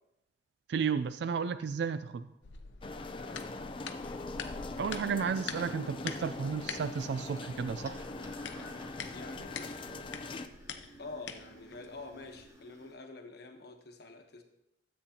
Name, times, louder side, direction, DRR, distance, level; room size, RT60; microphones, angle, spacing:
voice 1, 0.7-2.3 4.8-8.1, right 6 dB, 65° right, 13 dB, 0.3 m, -33 dB
sound 1, 2.4-12.5, left 6 dB, 80° left, 0.6 m, -46 dB
sound 2, 2.8-10.5, left 2 dB, 30° left, 0.5 m, -42 dB
voice 2, 3.2-3.5 4.0-4.3 9.1-9.9 11.0-14.4, left 3 dB, 65° left, 4 dB, 1.1 m, -47 dB
sound 3, 3.3-12.9, right 1 dB, 15° right, 1.0 m, -56 dB
13.0 x 8.2 x 2.9 m, 0.84 s
head